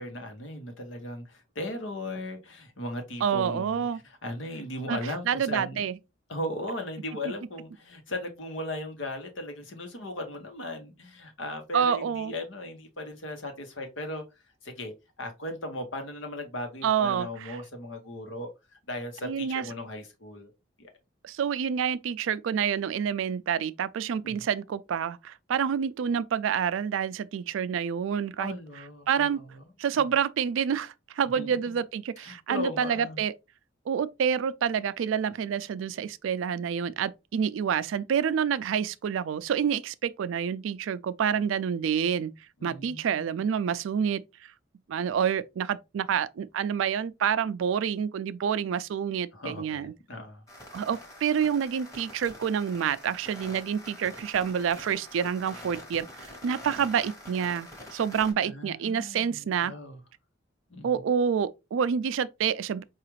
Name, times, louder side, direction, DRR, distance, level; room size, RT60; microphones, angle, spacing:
voice 1, 0.0-5.8 6.3-14.2 14.6-14.9 15.2-18.5 18.9-20.5 20.8-20.9 24.2-24.3 28.4-29.5 29.9-30.0 31.4-31.8 32.2-33.2 42.6-43.3 49.3-50.4 58.4-60.0 60.7-60.9, left 1 dB, 75° left, 1.0 m, -37 dB
voice 2, 3.2-4.0 4.9-6.0 11.7-12.3 16.8-17.6 19.2-19.6 21.2-29.4 29.8-33.3 33.9-42.3 42.6-44.5 44.9-49.9 50.7-56.1 56.4-59.7 60.8-62.8, right 7 dB, 80° right, 0.3 m, -28 dB
sound 1, 50.5-58.3, left 1 dB, 15° left, 1.1 m, -46 dB
4.7 x 2.4 x 3.1 m
head